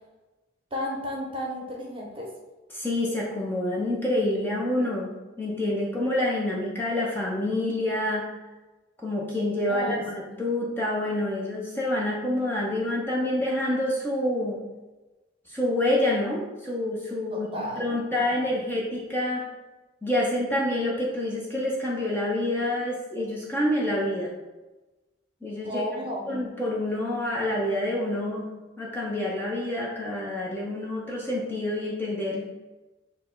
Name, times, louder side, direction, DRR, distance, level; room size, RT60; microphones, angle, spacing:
voice 1, 0.7-2.3 9.7-10.0 17.3-17.8 18.3-18.5 25.6-26.4, left 1 dB, 25° right, -2 dB, 0.8 m, -33 dB
voice 2, 2.7-5.1 5.4-8.3 9.0-14.6 15.5-19.4 20.0-24.3 25.4-25.8 26.3-28.5 28.8-32.5, left 1 dB, 10° left, -5 dB, 0.6 m, -27 dB
6.5 x 2.2 x 3.7 m, 1.1 s
head